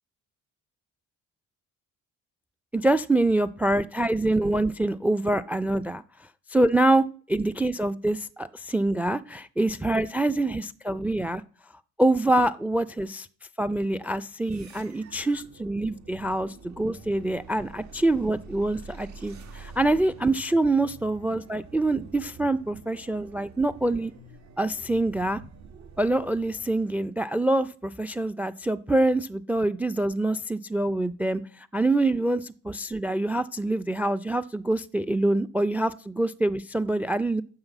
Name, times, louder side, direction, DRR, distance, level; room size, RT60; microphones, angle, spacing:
voice 1, 2.7-6.0 6.5-11.4 12.0-13.3 13.6-24.1 24.6-25.4 26.0-37.4, right 2 dB, 5° right, 14 dB, 0.4 m, -25 dB
sound 1, 14.4-27.1, right 4 dB, 65° right, 2.2 m, -47 dB
9.6 x 5.6 x 7.9 m, 0.44 s
cardioid pair, 90°, 30 cm